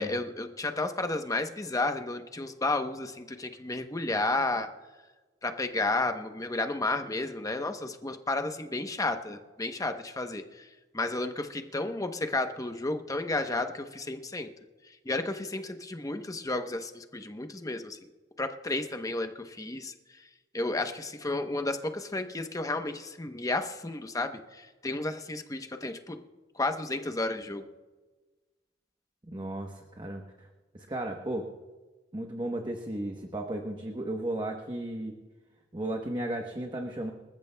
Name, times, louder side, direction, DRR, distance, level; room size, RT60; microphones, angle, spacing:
voice 1, 0.0-4.7 5.4-10.7 10.9-14.5 15.0-18.0 18.4-20.2 20.5-26.2 26.5-27.6, left 2 dB, 20° left, 6 dB, 0.8 m, -32 dB
voice 2, 29.3-30.5 30.7-31.5 32.1-35.2 35.7-37.1, right 1 dB, 25° right, 3 dB, 1.0 m, -34 dB
26.5 x 14.0 x 2.3 m, 1.3 s
head